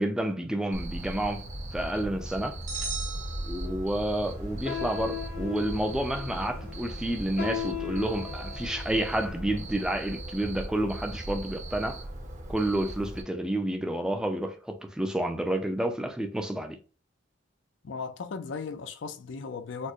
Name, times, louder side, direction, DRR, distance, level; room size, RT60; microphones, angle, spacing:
voice 1, 0.0-1.4 1.7-2.6 3.4-12.0 12.5-16.8, right 1 dB, 5° right, 0.4 m, -30 dB
Cricket, 0.7-13.2, right 1 dB, 40° right, 0.8 m, -38 dB
sound 1, 2.7-4.2, right 5 dB, 65° right, 1.7 m, -38 dB
sound 2, 4.2-9.4, left 8 dB, 55° left, 1.0 m, -38 dB
voice 2, 17.8-19.9, left 5 dB, 75° left, 0.5 m, -36 dB
4.3 x 2.1 x 3.0 m
head